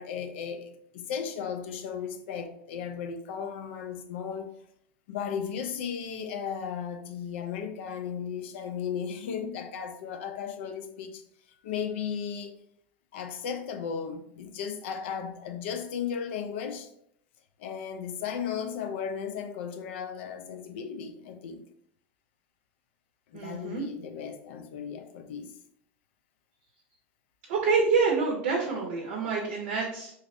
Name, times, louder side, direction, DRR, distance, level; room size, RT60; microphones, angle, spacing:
voice 1, 0.0-4.5 5.1-11.2 11.6-12.6 13.1-16.9 17.6-21.6 23.3-25.5, left 7 dB, 75° left, 0.4 m, -35 dB
voice 2, 23.3-23.8 27.5-30.1, right 4 dB, 70° right, 0.6 m, -27 dB
2.7 x 2.0 x 2.6 m
hypercardioid pair, 100°, 7 cm